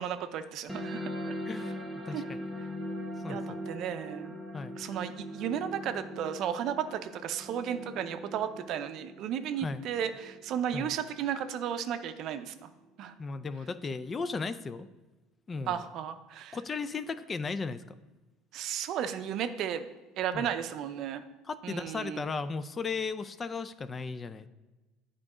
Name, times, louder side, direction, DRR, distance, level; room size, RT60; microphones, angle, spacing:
voice 1, 0.0-1.3 2.1-2.2 3.3-4.4 4.8-12.7 13.0-13.1 15.7-16.6 18.5-19.8 20.2-21.2 21.6-22.2, right 9 dB, 55° right, 9 dB, 0.5 m, -34 dB
sound 1, 0.7-11.7, equal, 5° right, 0.8 m, -41 dB
voice 2, 1.5-2.4 3.2-3.6 4.5-4.8 9.6-9.8 10.7-10.9 13.2-14.9 15.5-15.8 16.5-18.0 20.3-20.5 21.4-24.5, left 4 dB, 25° left, 13 dB, 0.3 m, -36 dB
8.8 x 3.8 x 4.9 m, 1.2 s
supercardioid pair, 105°, 0 cm